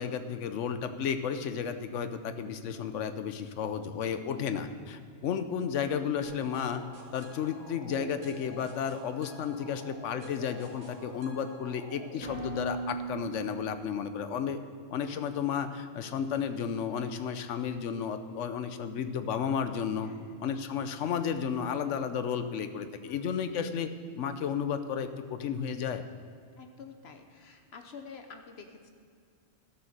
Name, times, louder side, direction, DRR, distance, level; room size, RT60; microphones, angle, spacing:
voice 1, 0.0-6.8 7.1-14.6 14.9-20.1 20.4-23.9 24.2-26.0, left 7 dB, 85° left, 10 dB, 1.1 m, -33 dB
sound 1, 6.2-14.0, right 2 dB, 75° right, 2.1 m, -43 dB
voice 2, 20.0-20.4 23.1-23.7 26.6-28.9, left 5 dB, 65° left, 6 dB, 1.0 m, -49 dB
13.0 x 6.9 x 6.5 m, 2.3 s
omnidirectional pair, 1.2 m